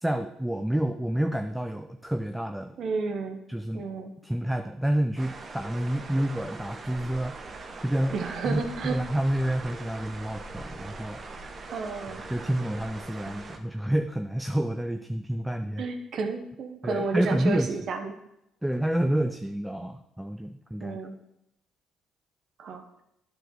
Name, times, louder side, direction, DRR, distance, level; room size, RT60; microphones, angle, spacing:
voice 1, 0.0-2.8 3.5-3.9 4.2-8.2 8.4-11.6 12.3-15.8 16.8-17.8 18.6-21.0, right 1 dB, 5° right, 7 dB, 0.5 m, -29 dB
voice 2, 2.8-3.4 3.7-4.1 8.1-9.0 11.7-12.2 13.2-13.3 15.8-18.1 20.8-21.1 22.6-22.8, right 4 dB, 60° right, 6 dB, 1.0 m, -31 dB
sound 1, 5.2-13.6, right 3 dB, 40° right, 1.1 m, -41 dB
9.0 x 4.1 x 6.5 m, 0.82 s
supercardioid pair, 60°, 0 cm